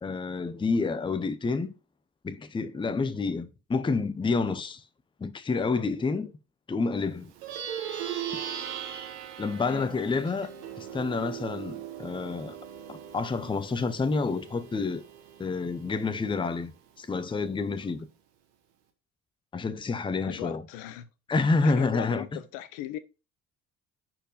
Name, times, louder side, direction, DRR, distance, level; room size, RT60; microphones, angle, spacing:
voice 1, 0.0-1.7 2.2-4.8 5.2-6.3 6.7-7.3 8.3-8.4 9.4-10.5 10.8-12.6 12.9-15.0 15.4-16.7 17.0-18.0 19.5-20.6 21.3-22.2, left 4 dB, 10° left, 0.6 m, -28 dB
Plucked string instrument, 7.3-17.0, right 9 dB, 60° right, 1.4 m, -39 dB
voice 2, 9.6-10.0 20.2-21.1 21.6-23.0, left 13 dB, 60° left, 0.7 m, -38 dB
9.9 x 4.4 x 2.3 m
figure-of-eight pair, 50°, 43 cm